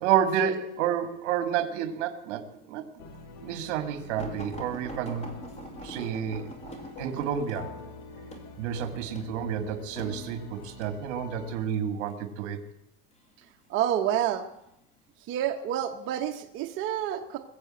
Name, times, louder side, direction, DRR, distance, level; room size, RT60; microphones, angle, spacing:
voice 1, 0.0-3.0 3.4-5.3 5.8-6.5 7.0-7.8 8.6-12.6, right 9 dB, 65° right, 9 dB, 2.2 m, -30 dB
sound 1, 3.0-11.7, left 3 dB, 75° left, 3.1 m, -46 dB
sound 2, 4.2-11.0 11.7-12.2 13.1-13.8 14.5-14.7 15.1-15.2, equal, 15° left, 2.3 m, -43 dB
voice 2, 13.7-14.5 15.2-17.4, right 10 dB, 35° right, 3 dB, 0.9 m, -28 dB
21.0 x 7.9 x 7.7 m, 0.84 s
supercardioid pair, 160°, 37 cm